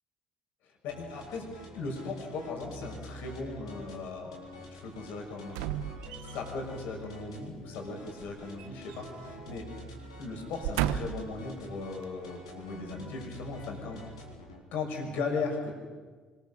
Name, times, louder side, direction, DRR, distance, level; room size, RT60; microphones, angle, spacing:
voice 1, 0.8-1.5 1.7-5.6 6.2-9.7 10.2-14.0 14.7-15.7, left 4 dB, 65° left, 2 dB, 5.9 m, -37 dB
sound 1, 0.9-14.6, left 1 dB, 90° left, 4.0 m, -47 dB
sound 2, 5.5-6.6 8.2-9.3 9.6-9.8 10.4-11.4 12.0-12.1, right 11 dB, 75° right, 0.9 m, -34 dB
25.5 x 21.0 x 6.4 m, 1.4 s
hypercardioid pair, 55°, 3 cm